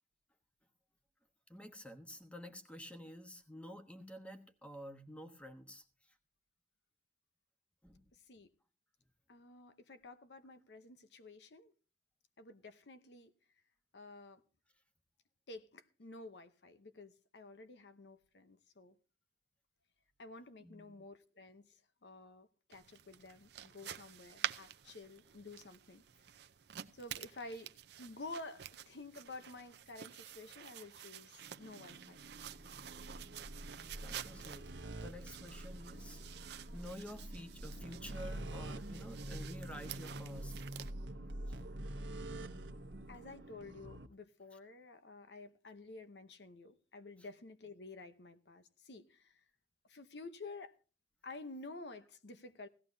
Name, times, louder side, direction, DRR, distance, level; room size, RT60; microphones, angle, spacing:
voice 1, 1.5-6.1 7.8-8.0 20.6-20.9 33.6-40.7 41.5-41.8, equal, 5° left, 1.2 m, -51 dB
voice 2, 8.1-8.5 9.3-11.7 12.4-13.3 13.9-14.4 15.5-19.0 20.2-26.0 26.9-27.7 28.0-32.2 43.1-49.4 49.8-50.7 51.2-52.7, left 2 dB, 65° left, 0.8 m, -51 dB
sound 1, 22.7-40.9, right 10 dB, 65° right, 0.6 m, -49 dB
sound 2, 31.4-44.1, right 1 dB, 85° right, 1.1 m, -46 dB
17.0 x 14.0 x 2.7 m
head